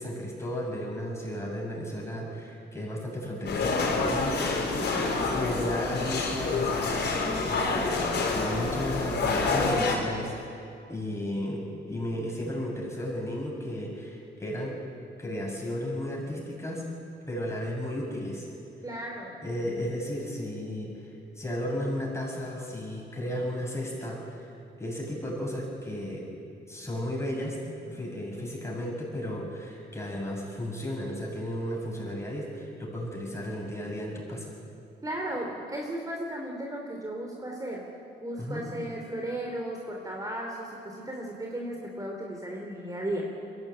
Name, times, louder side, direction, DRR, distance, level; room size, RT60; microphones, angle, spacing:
voice 1, 0.0-4.4 5.3-7.2 7.4-10.6 10.9-14.8 15.2-16.8 17.3-18.5 19.4-21.0 21.4-24.5 24.8-26.2 26.7-27.6 27.8-34.5 38.4-38.7, left 1 dB, 15° left, -2 dB, 7.7 m, -34 dB
sound 1, 3.5-10.0, left 3 dB, 70° left, 4.3 m, -27 dB
voice 2, 4.8-5.1 18.8-19.4 35.0-37.8 38.2-43.2, right 1 dB, 20° right, 0 dB, 3.1 m, -35 dB
22.5 x 16.0 x 8.8 m, 2.5 s
cardioid pair, 85°, 18 cm